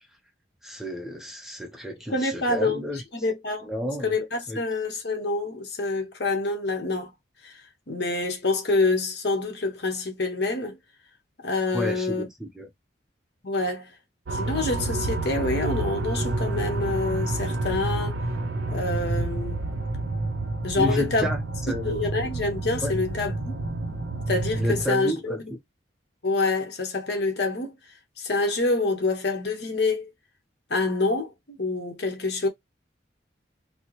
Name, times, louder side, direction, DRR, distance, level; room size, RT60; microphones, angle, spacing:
voice 1, 0.6-3.0 3.7-4.1 4.5-4.6 11.7-12.3 12.6-12.7 20.8-21.9 22.8-22.9 24.6-25.4, equal, ahead, 0.5 m, -31 dB
voice 2, 2.1-3.7 4.0-7.1 7.4-7.5 7.9-10.8 11.4-12.2 13.4-13.9 14.3-18.2 18.7-19.6 20.6-21.3 21.8-23.4 24.3-25.5 26.2-27.7 28.2-30.1 30.7-32.5, left 3 dB, 60° left, 0.9 m, -27 dB
sound 1, 14.3-24.8, right 2 dB, 80° right, 0.5 m, -29 dB
4.3 x 2.0 x 2.9 m
head